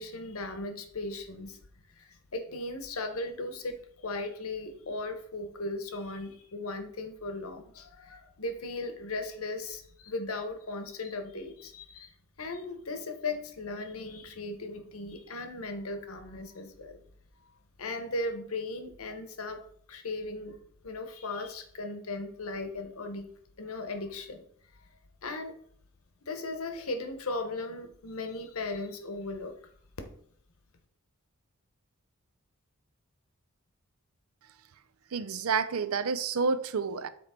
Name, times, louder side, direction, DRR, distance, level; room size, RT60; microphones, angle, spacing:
voice 1, 0.0-1.6 1.9-17.0 17.4-17.5 17.8-20.6 20.8-23.3 23.6-24.4 24.7-24.9 25.2-25.5 26.2-29.6 30.0-30.1, left 2 dB, 75° left, 1.0 m, -37 dB
voice 2, 35.1-37.1, right 5 dB, 75° right, 0.5 m, -29 dB
7.1 x 4.3 x 4.3 m
head